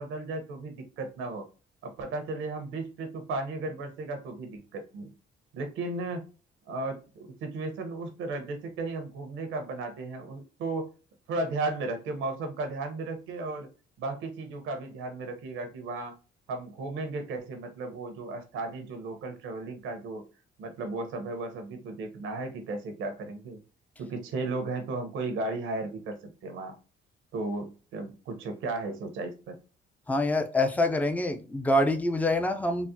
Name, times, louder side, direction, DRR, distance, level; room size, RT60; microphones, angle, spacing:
voice 1, 0.0-1.5 1.8-5.1 5.5-6.3 6.7-10.9 11.3-13.7 14.0-16.1 16.5-20.2 20.6-23.6 24.0-26.7 27.3-29.6, right 3 dB, 90° right, 0.9 m, -35 dB
voice 2, 30.1-32.9, left 1 dB, 10° left, 0.5 m, -26 dB
4.0 x 2.1 x 2.6 m
cardioid pair, 90°, 20 cm